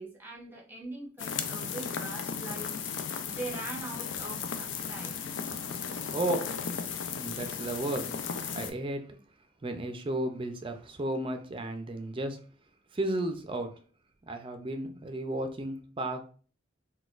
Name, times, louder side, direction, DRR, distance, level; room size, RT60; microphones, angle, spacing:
voice 1, 0.0-2.7 3.2-5.2, right 2 dB, 10° right, 0.8 m, -42 dB
sound 1, 1.2-8.7, left 6 dB, 75° left, 0.4 m, -35 dB
voice 2, 6.1-6.5 7.1-8.1 8.5-9.0 9.6-12.4 12.9-13.7 14.3-16.2, right 1 dB, 30° right, 0.4 m, -33 dB
4.0 x 2.2 x 2.4 m
head